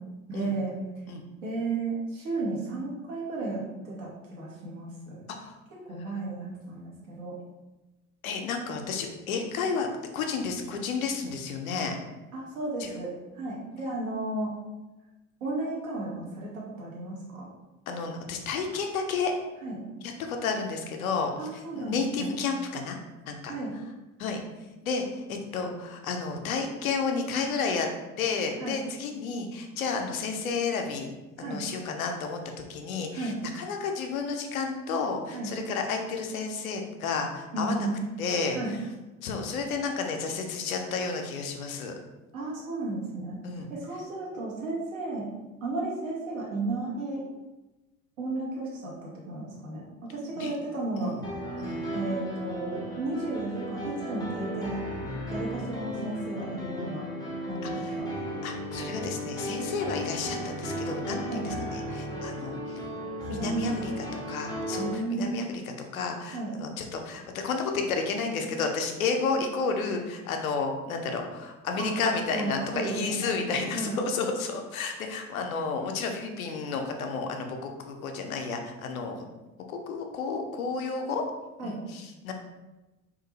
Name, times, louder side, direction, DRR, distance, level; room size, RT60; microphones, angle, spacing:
voice 1, 0.3-0.7 1.4-5.2 5.9-7.4 12.3-14.5 15.4-17.5 19.6-19.9 21.4-22.4 23.5-23.7 28.6-28.8 31.4-31.6 33.1-33.3 35.3-35.5 37.5-38.0 38.5-38.7 42.3-43.4 43.7-45.3 45.6-47.2 48.2-51.1 51.9-54.8 55.3-57.1 57.5-58.1 61.3-61.5 63.2-63.9 64.7-65.4 66.3-66.5 71.8-71.9 72.3-73.4 73.7-74.0 81.6-81.8, right 2 dB, 70° right, -5 dB, 1.0 m, -33 dB
voice 2, 8.2-9.9 10.1-12.0 12.8-12.9 17.9-19.3 20.0-23.0 23.3-23.5 24.2-24.4 24.8-27.9 28.2-31.1 31.4-32.4 32.7-37.9 38.2-38.8 39.2-42.0 43.4-43.7 50.4-50.5 51.0-51.2 51.6-51.9 57.6-57.9 58.4-62.8 63.3-65.6 65.9-79.2 79.7-81.2 81.6-82.3, left 4 dB, 80° left, 4 dB, 0.5 m, -31 dB
sound 1, 51.2-64.9, equal, 10° left, 0.5 m, -35 dB
2.4 x 2.4 x 2.9 m, 1.1 s
figure-of-eight pair, 60°, 41 cm